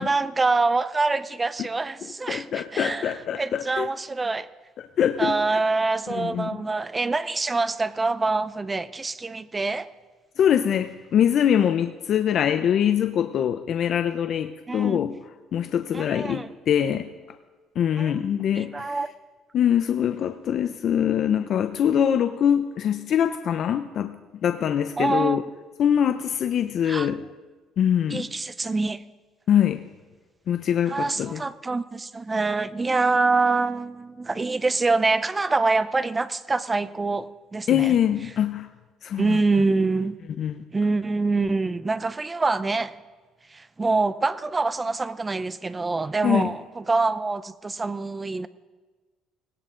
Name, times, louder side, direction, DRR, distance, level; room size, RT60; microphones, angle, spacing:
voice 1, 0.0-4.5 5.2-9.9 14.7-15.1 15.9-16.5 18.0-18.1 18.5-19.1 25.0-25.4 26.8-27.1 28.1-29.0 30.9-38.0 39.2-40.2 40.7-43.0 43.5-48.5, right 3 dB, 15° right, 14 dB, 0.6 m, -25 dB
voice 2, 2.3-3.9 4.8-5.4 6.1-6.5 10.4-15.2 15.5-17.1 17.8-19.0 19.5-25.4 25.8-27.2 27.8-28.3 29.5-29.8 30.5-31.4 37.7-38.7 39.0-39.4 40.4-40.6 46.2-46.5, left 9 dB, 50° left, 9 dB, 0.6 m, -23 dB
19.0 x 17.5 x 3.8 m, 1.3 s
cardioid pair, 140°, 0 cm